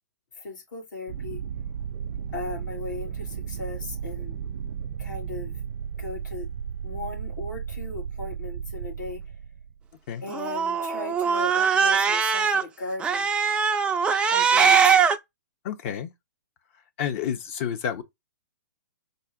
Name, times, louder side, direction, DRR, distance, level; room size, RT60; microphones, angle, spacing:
voice 1, 0.4-1.4 2.3-4.4 5.0-5.5 6.0-6.5 6.8-9.2 10.2-13.3 14.3-14.9, left 2 dB, 75° left, 2.8 m, -37 dB
sound 1, 1.1-9.8, right 7 dB, 60° right, 0.6 m, -34 dB
Cat, 10.3-12.6 13.0-15.2, right 6 dB, 10° right, 0.4 m, -21 dB
voice 2, 15.6-16.1 17.0-18.0, left 8 dB, 45° left, 0.8 m, -29 dB
4.0 x 2.4 x 3.8 m
hypercardioid pair, 125°, 10 cm